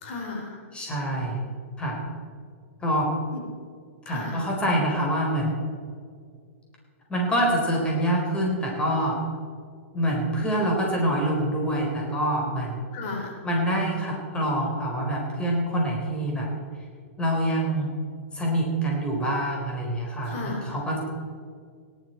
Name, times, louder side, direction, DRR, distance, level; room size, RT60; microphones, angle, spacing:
voice 1, 0.0-0.6 4.1-4.4 12.9-13.3 20.2-20.6, left 3 dB, 55° left, 1 dB, 3.7 m, -34 dB
voice 2, 0.7-1.4 1.8-2.0 2.8-3.1 4.1-5.5 7.1-9.2 9.9-12.8 13.4-16.5 17.2-17.9 18.3-21.0, right 1 dB, 15° left, -2 dB, 4.2 m, -26 dB
17.5 x 11.5 x 4.5 m, 2.1 s
hypercardioid pair, 130°, 7 cm